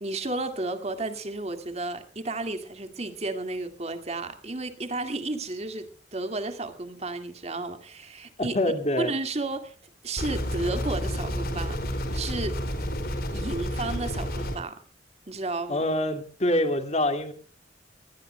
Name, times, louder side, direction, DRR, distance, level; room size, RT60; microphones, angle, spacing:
voice 1, 0.0-8.6 9.0-9.7 10.0-12.6 13.3-14.8 15.3-15.9, right 2 dB, 35° right, 2.0 m, -33 dB
voice 2, 8.4-9.1 15.7-17.3, left 1 dB, 35° left, 2.1 m, -25 dB
sound 1, 10.2-14.6, equal, 55° left, 4.6 m, -30 dB
24.0 x 19.5 x 2.2 m
head